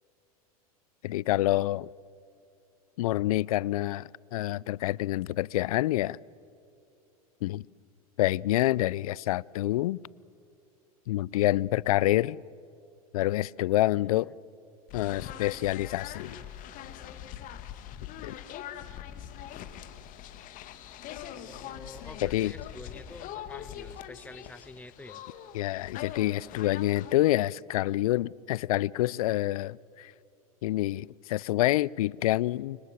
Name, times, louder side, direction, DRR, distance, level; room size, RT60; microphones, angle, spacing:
voice 1, 1.0-1.9 3.0-6.2 7.4-7.6 8.2-10.0 11.1-12.4 13.1-14.3 14.9-16.4 18.2-18.3 22.2-22.5 25.5-30.1 30.6-32.8, left 16 dB, 70° left, 0.5 m, -27 dB
sound 1, 14.9-27.1, left 10 dB, 45° left, 2.0 m, -42 dB
voice 2, 21.2-25.2, left 2 dB, 10° left, 1.1 m, -48 dB
29.5 x 25.0 x 7.5 m
hypercardioid pair, 95°, 19 cm